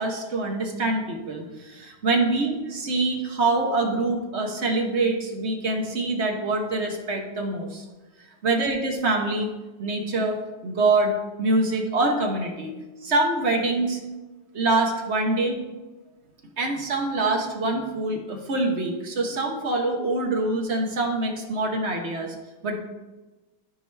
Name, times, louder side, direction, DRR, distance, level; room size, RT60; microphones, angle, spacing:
voice 1, 0.0-7.8 8.4-9.5 9.8-10.4 10.6-12.7 13.0-14.0 14.5-15.6 16.6-22.3 22.6-22.8, right 2 dB, 40° right, 2 dB, 1.2 m, -25 dB
12.5 x 4.9 x 3.4 m, 1.2 s
omnidirectional pair, 2.0 m